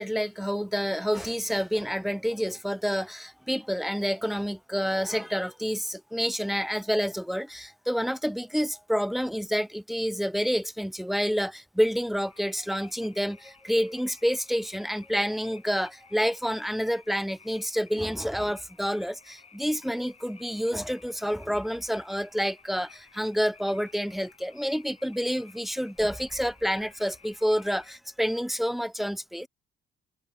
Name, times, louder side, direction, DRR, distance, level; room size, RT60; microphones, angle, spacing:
voice 1, 0.0-29.5, equal, ahead, 0.5 m, -28 dB
sound 1, 12.3-28.0, left 5 dB, 35° left, 6.8 m, -55 dB
cardioid pair, 90°, 20 cm